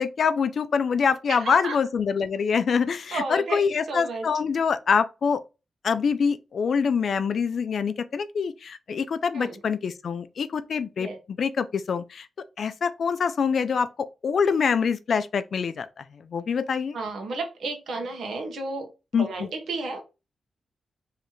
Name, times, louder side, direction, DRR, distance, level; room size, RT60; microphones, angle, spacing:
voice 1, 0.0-5.4 5.8-12.3 12.6-17.0 19.1-19.5, left 6 dB, 55° left, 0.4 m, -25 dB
voice 2, 1.3-1.8 3.1-4.2 9.3-9.6 11.0-11.2 16.9-18.9 19.1-20.0, right 3 dB, 80° right, 1.4 m, -32 dB
4.7 x 3.3 x 3.1 m
wide cardioid pair, 170°, 0 cm